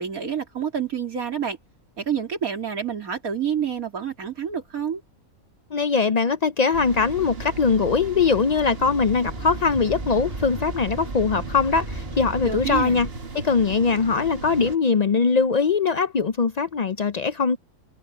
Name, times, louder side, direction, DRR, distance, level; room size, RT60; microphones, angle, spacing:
voice 1, 0.0-1.6 2.0-5.0 12.4-13.1, right 7 dB, 85° right, 3.3 m, -28 dB
voice 2, 5.7-13.1 13.3-17.6, left 5 dB, 65° left, 0.4 m, -21 dB
sound 1, 6.7-14.8, right 3 dB, 45° right, 1.7 m, -36 dB
sound 2, 8.8-13.1, right 1 dB, 20° right, 3.4 m, -37 dB
omnidirectional pair, 1.5 m